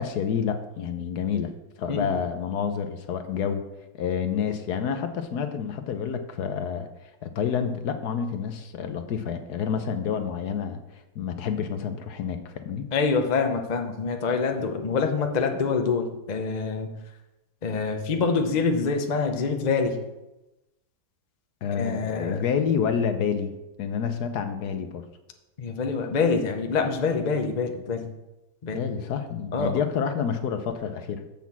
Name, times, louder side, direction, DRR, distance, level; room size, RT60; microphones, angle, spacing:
voice 1, 0.0-1.5 1.8-3.6 4.0-6.9 7.2-10.8 11.1-12.9 21.6-23.5 23.8-25.0 28.7-31.2, left 7 dB, 70° left, 8 dB, 1.2 m, -28 dB
voice 2, 1.9-2.2 12.9-16.9 17.6-20.0 21.7-22.4 25.6-28.1 28.6-28.8 29.5-29.8, left 4 dB, 40° left, 4 dB, 0.6 m, -26 dB
7.1 x 6.0 x 7.3 m, 0.99 s
omnidirectional pair, 1.9 m